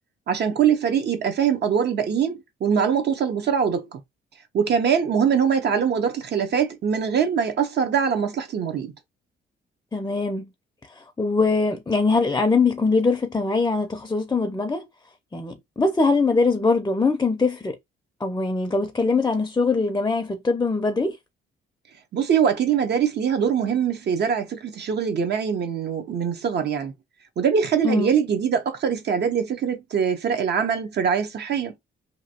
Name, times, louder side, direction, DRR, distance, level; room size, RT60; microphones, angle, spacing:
voice 1, 0.3-4.0 4.5-8.9 22.1-26.9 27.4-31.7, right 7 dB, 60° right, 0.9 m, -23 dB
voice 2, 9.9-10.5 11.0-14.8 15.3-17.8 18.2-21.2 27.8-28.1, left 3 dB, 15° left, 0.5 m, -22 dB
2.9 x 2.6 x 2.8 m
cardioid pair, 90°, 20 cm